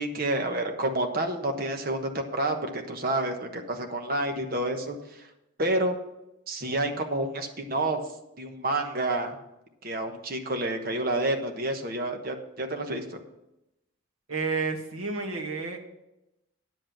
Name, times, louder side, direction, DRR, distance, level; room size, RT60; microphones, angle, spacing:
voice 1, 0.0-5.3 5.6-5.9 6.5-8.0 8.4-9.4 9.8-13.2, right 1 dB, 45° right, 5 dB, 1.2 m, -29 dB
voice 2, 14.3-15.8, right 4 dB, 85° right, 2 dB, 1.8 m, -30 dB
9.7 x 7.8 x 6.0 m, 0.90 s
head